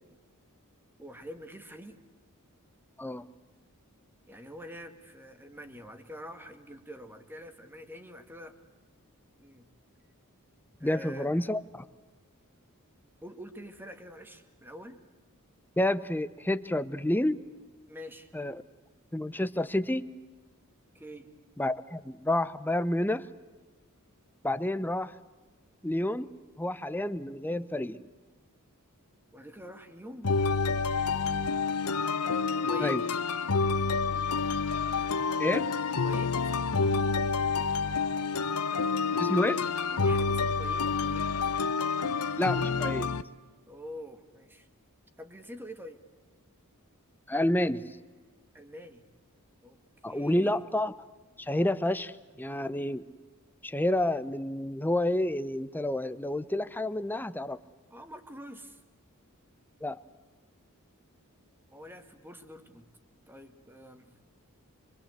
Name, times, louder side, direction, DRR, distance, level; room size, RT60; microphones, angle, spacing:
voice 1, 1.0-2.0 4.3-8.6 9.4-9.7 10.8-11.3 13.2-15.0 17.9-18.3 20.9-21.3 29.3-30.3 32.7-33.0 36.0-36.6 39.9-41.5 43.7-44.7 45.2-46.0 48.5-49.1 49.6-49.8 50.1-50.6 57.9-58.8 61.7-62.9 63.3-64.2, equal, 10° right, 8 dB, 2.0 m, -46 dB
voice 2, 10.8-11.8 15.8-17.5 18.3-18.6 19.1-20.0 21.6-23.3 24.4-25.2 25.8-26.3 26.6-28.0 32.8-33.0 35.4-35.7 39.2-39.6 42.4-43.1 47.3-48.0 50.0-50.9 51.4-53.0 53.6-57.6 59.8-60.0, left 1 dB, 10° left, 13 dB, 0.8 m, -29 dB
sound 1, 30.2-43.2, left 4 dB, 85° left, 1.0 m, -28 dB
25.5 x 23.0 x 8.1 m, 1.3 s
head